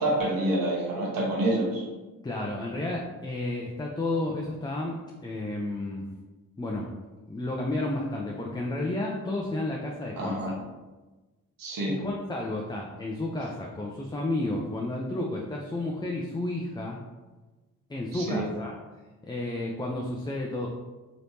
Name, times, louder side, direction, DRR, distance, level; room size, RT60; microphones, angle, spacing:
voice 1, 0.0-1.8 10.2-10.5 11.6-12.0 18.1-18.4, right 1 dB, 60° right, -3 dB, 1.1 m, -27 dB
voice 2, 2.2-6.1 6.6-6.9 7.3-10.5 11.9-17.0 17.9-18.8 19.2-20.7, left 2 dB, 10° left, -1 dB, 0.5 m, -32 dB
3.2 x 3.0 x 2.7 m, 1.2 s
supercardioid pair, 40°, 37 cm